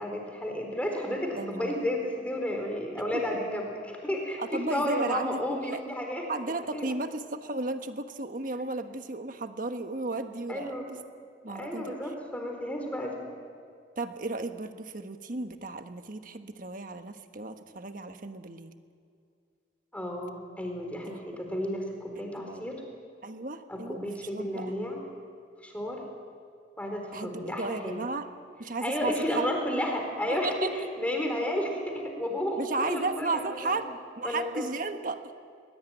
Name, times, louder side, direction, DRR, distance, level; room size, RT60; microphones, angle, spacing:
voice 1, 0.0-6.3 6.7-6.9 10.5-10.9 11.5-13.3 19.9-22.8 23.7-25.0 25.6-26.0 26.8-28.0 28.8-33.8 34.2-34.7, left 1 dB, 10° left, 1 dB, 4.2 m, -32 dB
voice 2, 1.4-1.8 3.1-3.4 4.4-5.8 6.3-11.0 11.4-11.9 14.0-18.7 21.1-21.2 22.5-22.7 23.2-24.7 27.1-28.3 28.6-29.5 30.3-30.7 32.6-35.2, right 3 dB, 45° right, 7 dB, 1.3 m, -34 dB
21.0 x 20.5 x 9.2 m, 2.4 s
head